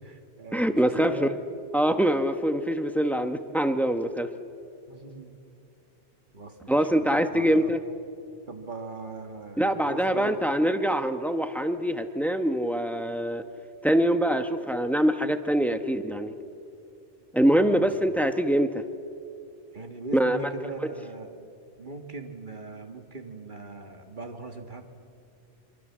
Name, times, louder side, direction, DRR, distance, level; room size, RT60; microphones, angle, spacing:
voice 1, 0.0-1.4 4.9-5.4 6.3-7.7 8.5-10.4 17.5-17.9 19.7-21.3 21.8-24.8, right 3 dB, 45° right, 5 dB, 2.0 m, -40 dB
voice 2, 0.5-1.3 1.7-4.3 6.7-7.8 9.6-13.4 13.8-16.3 17.3-18.8 20.1-20.4, equal, ahead, 8 dB, 1.0 m, -24 dB
26.5 x 23.5 x 7.4 m, 2.6 s
omnidirectional pair, 1.2 m